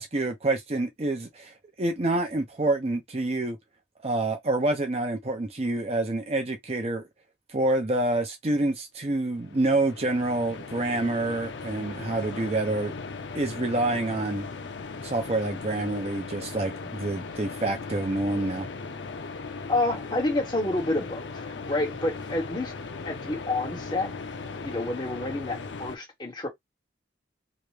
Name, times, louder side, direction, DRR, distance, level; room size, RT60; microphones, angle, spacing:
voice 1, 0.0-3.6 4.0-7.0 7.5-12.9 13.3-14.5 15.0-18.7, right 2 dB, 35° right, 0.6 m, -27 dB
sound 1, 9.3-26.0, left 4 dB, 75° left, 0.6 m, -38 dB
voice 2, 19.7-22.7 23.0-24.1 24.6-26.5, left 2 dB, 25° left, 1.5 m, -29 dB
3.0 x 2.5 x 3.2 m
head